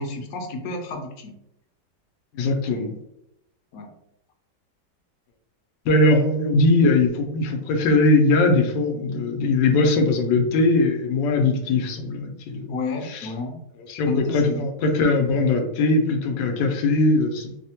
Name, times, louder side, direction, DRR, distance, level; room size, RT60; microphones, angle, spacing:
voice 1, 0.0-1.3 3.7-3.9 12.7-13.6 14.0-14.7, left 2 dB, 70° left, 4 dB, 0.9 m, -30 dB
voice 2, 2.3-3.0 5.8-12.7 13.0-13.3 13.9-17.6, left 2 dB, 90° left, 3 dB, 1.3 m, -20 dB
3.2 x 2.1 x 2.7 m, 0.82 s
omnidirectional pair, 1.9 m